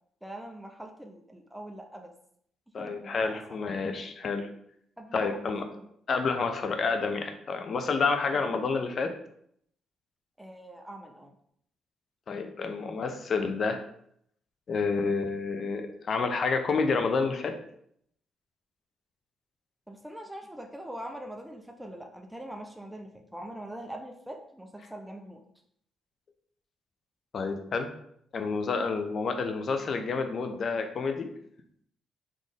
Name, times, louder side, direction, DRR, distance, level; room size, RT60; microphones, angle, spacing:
voice 1, 0.2-2.1 2.8-3.6 5.0-5.9 8.3-8.4 10.4-11.3 19.9-25.4, right 1 dB, 5° right, 3 dB, 0.6 m, -43 dB
voice 2, 2.7-4.5 5.1-5.7 6.1-9.1 12.3-13.8 14.7-17.5 27.3-27.9 28.3-31.3, left 4 dB, 50° left, 6 dB, 0.6 m, -29 dB
4.2 x 3.1 x 3.7 m, 0.68 s
cardioid pair, 90°, 0 cm